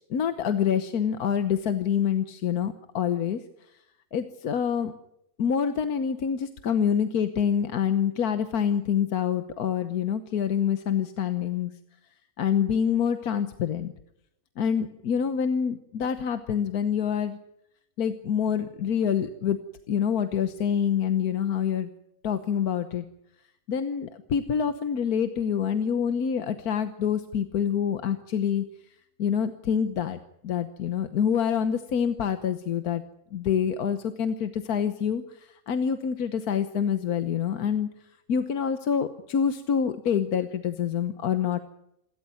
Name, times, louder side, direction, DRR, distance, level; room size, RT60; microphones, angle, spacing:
voice 1, 0.0-3.4 4.1-4.9 5.4-11.7 12.4-13.9 14.6-17.4 18.0-19.6 19.9-21.9 22.2-23.0 23.7-28.6 29.2-30.2 30.4-33.0 33.3-37.9 38.3-41.6, left 8 dB, 85° left, 10 dB, 1.5 m, -26 dB
28.0 x 13.0 x 9.4 m, 0.83 s
omnidirectional pair, 1.5 m